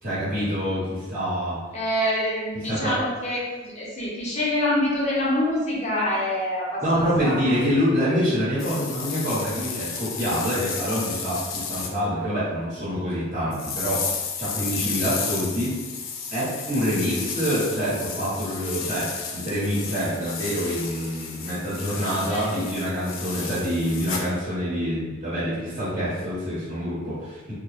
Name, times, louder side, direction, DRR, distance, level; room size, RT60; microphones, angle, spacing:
voice 1, 0.0-1.6 2.6-2.9 6.8-15.7 16.3-27.5, equal, 35° right, -12 dB, 1.1 m, -26 dB
voice 2, 1.7-7.6 22.3-22.4, left 1 dB, 35° left, -5 dB, 0.7 m, -26 dB
sound 1, 8.6-11.9 13.5-24.3, left 6 dB, 90° left, 0.4 m, -33 dB
3.3 x 2.1 x 2.5 m, 1.3 s
head